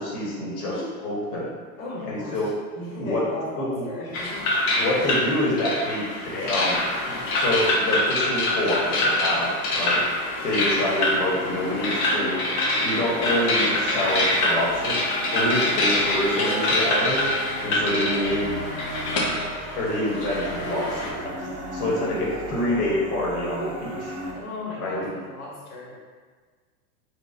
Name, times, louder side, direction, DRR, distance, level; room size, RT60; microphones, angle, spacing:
voice 1, 0.0-0.7 1.0-1.5 2.0-2.5 3.0-3.2 3.6-3.9 4.7-6.1 6.3-6.8 7.3-10.0 10.4-12.4 12.8-17.2 17.6-18.6 19.8-21.4 21.7-24.1 24.8-25.1, left 1 dB, 85° left, -5 dB, 1.1 m, -26 dB
voice 2, 1.8-2.5 2.7-4.5 24.3-25.9, left 2 dB, 65° left, -4 dB, 1.1 m, -36 dB
sound 1, 4.1-21.1, left 1 dB, 30° left, 0.4 m, -25 dB
sound 2, 10.7-24.3, equal, 30° right, 0.7 m, -35 dB
4.0 x 2.3 x 2.5 m, 1.5 s
supercardioid pair, 140°, 46 cm